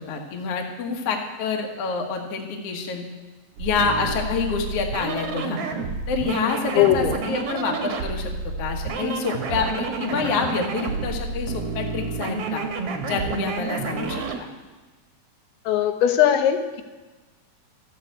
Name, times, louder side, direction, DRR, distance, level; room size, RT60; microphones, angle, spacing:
voice 1, 0.1-3.0 3.6-5.6 6.1-8.3 8.6-12.6 13.0-14.2, left 5 dB, 50° left, 2 dB, 2.0 m, -27 dB
sound 1, 3.6-14.4, right 4 dB, 60° right, 1.6 m, -29 dB
voice 2, 6.7-7.1 15.7-16.8, left 10 dB, 90° left, 6 dB, 2.9 m, -19 dB
14.0 x 8.1 x 7.9 m, 1.2 s
omnidirectional pair, 4.4 m